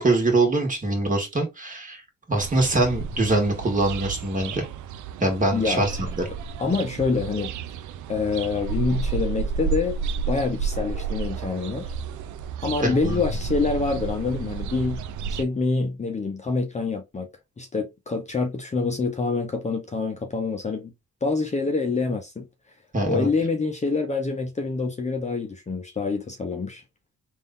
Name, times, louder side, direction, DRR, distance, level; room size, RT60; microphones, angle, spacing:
voice 1, 0.0-2.0 2.3-4.7 5.2-6.3 12.8-13.2 22.9-23.3, right 2 dB, 25° right, 1.9 m, -23 dB
sound 1, 2.4-15.4, right 5 dB, 75° right, 0.6 m, -31 dB
voice 2, 5.5-5.9 6.6-7.5 8.1-9.9 10.3-11.9 12.6-15.0 15.3-17.3 17.6-20.9 21.2-22.5 23.1-26.8, left 4 dB, 25° left, 0.8 m, -26 dB
3.5 x 2.7 x 3.7 m
cardioid pair, 90°, 30 cm